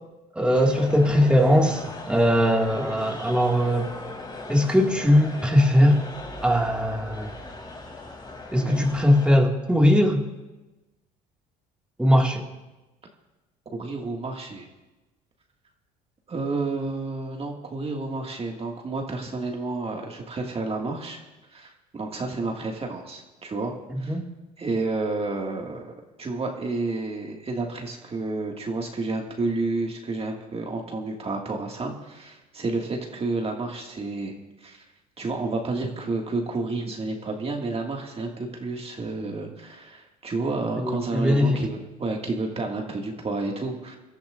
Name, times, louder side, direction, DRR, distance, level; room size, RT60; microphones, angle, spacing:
voice 1, 0.3-3.9 4.5-6.0 6.4-7.3 8.5-10.2 12.0-12.5 23.9-24.3 40.7-41.6, equal, 5° right, 1 dB, 2.2 m, -20 dB
sound 1, 0.5-9.4, left 2 dB, 20° left, 3.2 m, -39 dB
voice 2, 8.6-8.9 13.7-14.7 16.3-21.2 21.5-24.2 24.6-34.3 34.6-34.8 35.2-44.0, right 3 dB, 30° right, 1 dB, 2.2 m, -30 dB
25.5 x 13.0 x 2.6 m, 1.1 s
hypercardioid pair, 75°, 20 cm